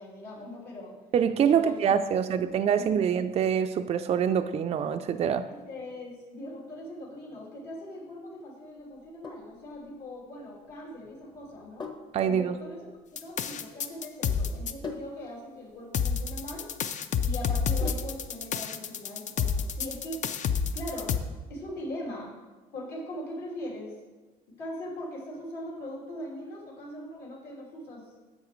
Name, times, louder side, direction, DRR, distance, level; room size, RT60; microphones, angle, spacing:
voice 1, 0.0-1.0 1.5-1.8 2.1-3.1 5.5-11.9 12.2-12.9 13.2-16.7 17.2-20.2 20.7-21.1 21.5-22.3 22.7-23.9 24.6-28.0, left 1 dB, 70° left, -5 dB, 3.0 m, -40 dB
voice 2, 1.1-5.5 12.1-12.5, right 8 dB, 40° right, 7 dB, 0.4 m, -25 dB
Sink (filling or washing), 8.9-18.4, left 4 dB, 25° left, 0.8 m, -45 dB
sound 1, 13.2-14.7 15.9-21.2, left 6 dB, 45° left, 0.5 m, -29 dB
10.5 x 7.2 x 3.1 m, 1.3 s
cardioid pair, 110°, 17 cm